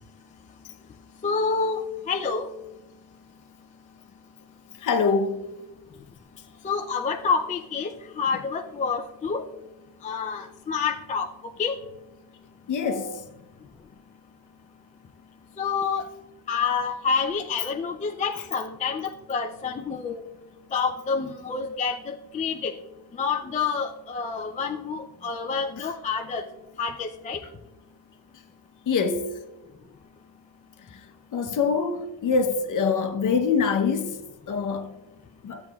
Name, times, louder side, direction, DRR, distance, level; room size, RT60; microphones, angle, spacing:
voice 1, 1.2-1.8 2.1-2.5 6.6-9.4 10.0-11.3 11.6-11.8 12.8-13.2 15.6-16.0 16.5-20.2 20.7-22.7 23.2-26.4 26.8-27.4, left 5 dB, 20° left, 0.4 m, -28 dB
voice 2, 4.8-5.4 12.7-13.1 28.9-29.3 31.3-34.2 34.5-34.9 35.4-35.6, left 5 dB, 45° left, 0.9 m, -24 dB
12.5 x 8.0 x 2.3 m
cardioid pair, 135°, 42 cm